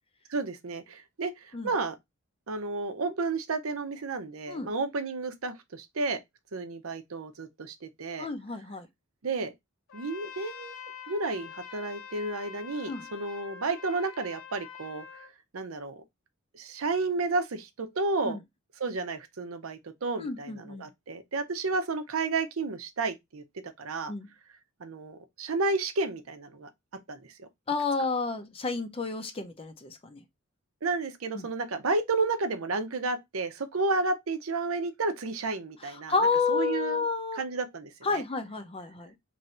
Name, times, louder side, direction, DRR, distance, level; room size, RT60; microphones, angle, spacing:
voice 1, 0.3-2.0 2.5-6.2 6.5-8.3 9.2-9.5 9.9-10.7 11.1-15.0 15.5-16.0 16.5-18.4 18.8-23.4 23.8-24.1 24.8-26.7 27.1-27.5 30.8-36.1 36.5-37.0 37.3-38.2, right 3 dB, 80° right, 0.7 m, -31 dB
voice 2, 8.2-8.9 12.9-13.1 18.2-18.4 20.2-20.9 24.1-24.3 27.7-30.2 31.3-31.5 35.8-37.4 38.0-39.1, left 4 dB, 25° left, 0.5 m, -30 dB
Trumpet, 9.9-15.3, left 7 dB, 70° left, 0.7 m, -45 dB
3.1 x 2.6 x 4.1 m
head